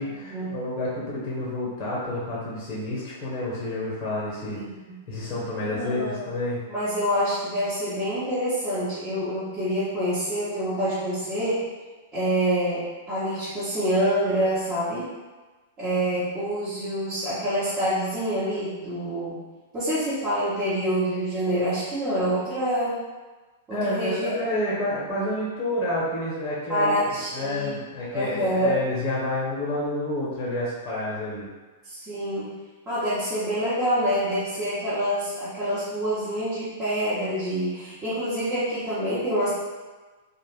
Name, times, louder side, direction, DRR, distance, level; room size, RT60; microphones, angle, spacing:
voice 1, 0.0-4.6 5.1-6.6 23.7-31.5, left 1 dB, 35° left, -7 dB, 0.8 m, -29 dB
voice 2, 4.5-5.0 5.6-6.3 6.7-11.6 12.1-15.1 15.8-19.4 19.7-23.0 23.7-24.3 26.7-27.8 28.1-28.8 31.9-32.5 32.9-39.5, equal, 25° right, -13 dB, 1.0 m, -26 dB
2.4 x 2.2 x 3.2 m, 1.3 s
figure-of-eight pair, 100°, 0 cm